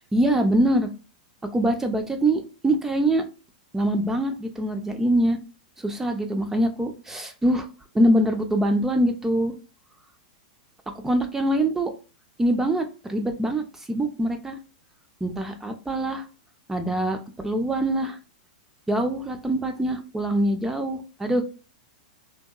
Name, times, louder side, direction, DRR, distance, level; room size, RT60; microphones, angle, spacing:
voice 1, 0.1-0.9 1.5-3.2 3.7-5.4 5.8-7.7 7.9-9.5 11.0-11.9 12.4-14.6 15.2-16.3 16.7-18.2 18.9-21.4, right 1 dB, 10° right, 5 dB, 0.4 m, -24 dB
2.7 x 2.2 x 2.3 m, 0.34 s
hypercardioid pair, 135°, 4 cm